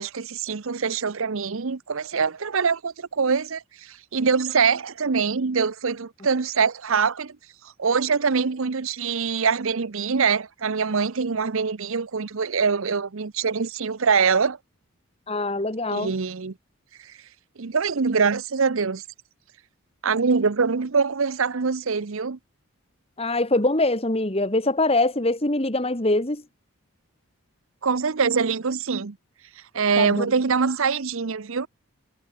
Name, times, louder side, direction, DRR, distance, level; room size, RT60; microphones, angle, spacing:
voice 1, 0.0-7.4 7.8-14.6 15.9-16.5 17.0-17.1 17.6-19.0 20.0-22.4 27.8-29.2 29.7-31.7, right 5 dB, 65° right, 0.7 m, -24 dB
voice 2, 15.3-16.1 23.2-26.4 30.0-30.3, left 2 dB, 25° left, 1.8 m, -23 dB
head